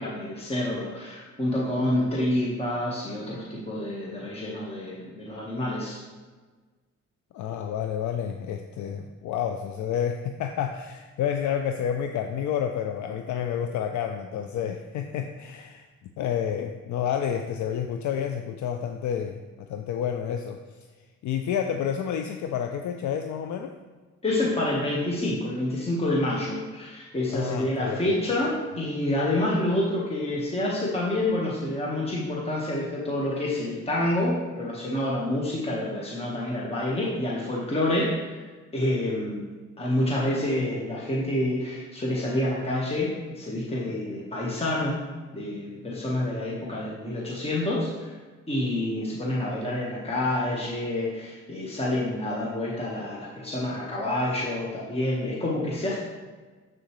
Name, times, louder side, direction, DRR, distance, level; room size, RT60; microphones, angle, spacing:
voice 1, 0.0-6.0 24.2-38.4 38.7-39.5 39.8-45.0 45.3-48.1 48.5-56.0, left 1 dB, 20° left, -4 dB, 1.3 m, -28 dB
voice 2, 7.3-15.9 16.2-20.8 21.2-23.7 27.3-28.0, left 8 dB, 70° left, 6 dB, 0.5 m, -29 dB
7.1 x 6.5 x 3.1 m, 1.3 s
cardioid pair, 90°, 30 cm